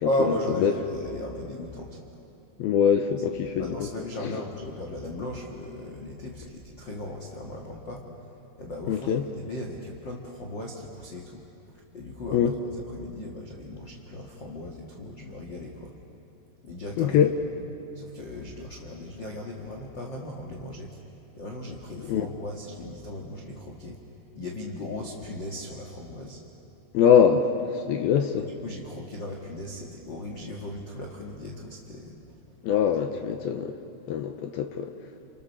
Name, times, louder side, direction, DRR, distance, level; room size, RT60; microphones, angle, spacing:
voice 1, 0.0-2.0 3.5-8.0 8.6-15.9 16.6-17.4 17.9-21.0 21.4-24.0 24.3-26.4 28.4-32.2 32.5-32.6, left 1 dB, 45° left, -1 dB, 1.5 m, -36 dB
voice 2, 2.6-3.7 4.2-4.3 8.9-9.2 12.3-12.5 17.0-17.3 22.0-22.3 26.9-28.5 32.6-33.7 34.1-34.9, left 8 dB, 75° left, 6 dB, 2.4 m, -23 dB
29.5 x 28.5 x 6.8 m, 2.7 s
omnidirectional pair, 5.1 m